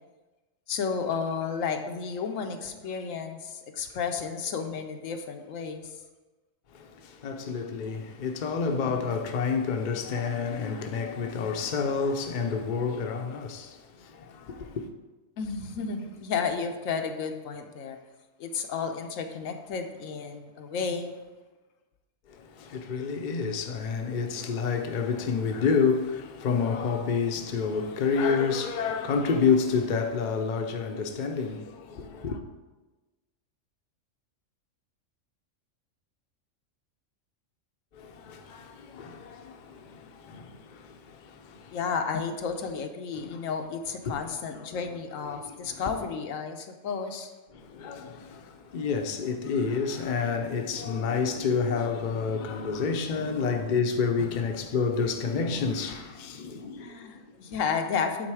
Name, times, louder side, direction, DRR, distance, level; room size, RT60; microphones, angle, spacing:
voice 1, 0.7-6.0 15.4-18.0 18.4-21.1 41.7-47.3 56.8-58.3, left 5 dB, 80° left, 1.1 m, -32 dB
voice 2, 6.7-14.9 22.3-32.4 37.9-41.8 43.1-43.4 44.1-44.2 44.5-44.9 45.3-45.8 47.5-57.1, left 5 dB, 45° left, 0.6 m, -29 dB
8.7 x 4.0 x 4.8 m
omnidirectional pair, 1.4 m